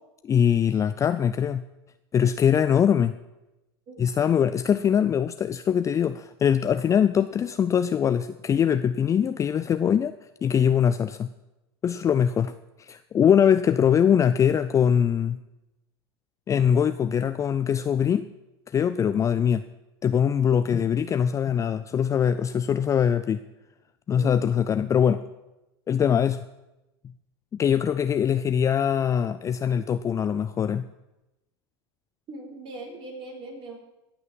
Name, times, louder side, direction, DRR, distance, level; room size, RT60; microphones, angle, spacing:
voice 1, 0.2-1.6 2.1-3.1 4.0-10.1 10.4-11.3 11.8-12.5 12.8-15.4 16.5-18.3 18.7-19.6 20.0-23.4 24.1-25.2 25.9-26.4 27.6-30.9, left 8 dB, 25° left, 11 dB, 0.4 m, -22 dB
voice 2, 32.3-33.7, right 2 dB, 40° right, 1 dB, 4.5 m, -40 dB
16.5 x 6.1 x 7.6 m, 0.98 s
hypercardioid pair, 100°, 13 cm